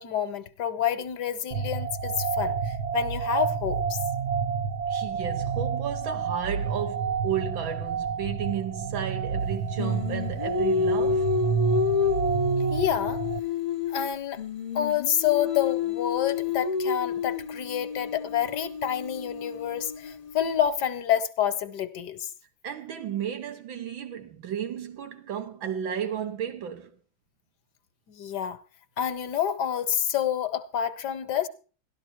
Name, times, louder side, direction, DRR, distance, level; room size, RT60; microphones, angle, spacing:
voice 1, 0.0-4.0 12.7-13.2 13.9-14.4 14.7-22.3 28.1-28.6 29.0-31.5, left 10 dB, 65° left, 1.4 m, -28 dB
sound 1, 1.5-13.4, right 6 dB, 65° right, 1.1 m, -29 dB
voice 2, 4.9-11.3 22.6-26.9, right 8 dB, 90° right, 2.0 m, -33 dB
Singing, 9.8-14.1 14.4-20.4, left 5 dB, 40° left, 0.5 m, -29 dB
12.5 x 12.0 x 4.4 m
omnidirectional pair, 2.1 m